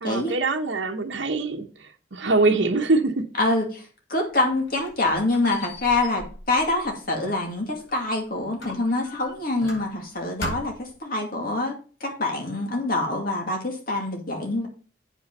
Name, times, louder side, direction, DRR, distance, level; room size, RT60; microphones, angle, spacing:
voice 1, 0.0-3.5, right 3 dB, 75° right, 1.0 m, -24 dB
voice 2, 3.4-3.8 4.1-11.7 12.0-14.7, left 2 dB, 50° left, 2.2 m, -25 dB
Squeak, 4.3-8.1 8.6-10.1 10.4-11.0, left 1 dB, 80° left, 4.9 m, -39 dB
8.6 x 5.5 x 5.3 m
head